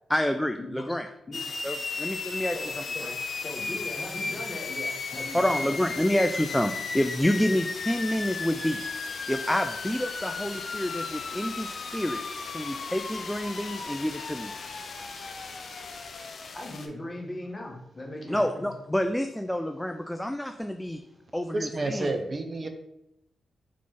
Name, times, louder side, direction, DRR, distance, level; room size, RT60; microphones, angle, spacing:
voice 1, 0.1-1.1 1.6-3.1 5.3-8.8 9.3-14.5 18.3-21.0 21.3-22.1, left 1 dB, 10° left, 6 dB, 0.4 m, -28 dB
sound 1, 1.3-16.9, left 4 dB, 65° left, 0.6 m, -35 dB
voice 2, 2.5-5.7 16.5-18.7, left 1 dB, 35° left, -1 dB, 1.3 m, -39 dB
voice 3, 21.5-22.7, right 2 dB, 50° right, 6 dB, 0.6 m, -30 dB
3.9 x 3.1 x 3.7 m, 0.82 s
supercardioid pair, 50°, 0 cm